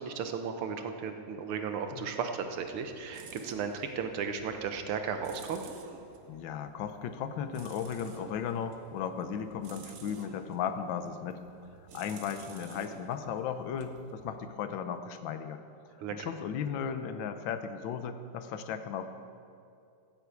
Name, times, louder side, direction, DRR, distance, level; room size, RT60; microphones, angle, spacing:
voice 1, 0.0-5.6 16.0-16.3, right 6 dB, 85° right, 6 dB, 1.9 m, -35 dB
sound 1, 2.2-14.8, right 5 dB, 55° right, 0.9 m, -52 dB
voice 2, 6.3-11.4 11.9-15.6 16.1-19.1, left 7 dB, 70° left, 9 dB, 1.4 m, -36 dB
14.5 x 7.9 x 8.2 m, 2.5 s
omnidirectional pair, 2.3 m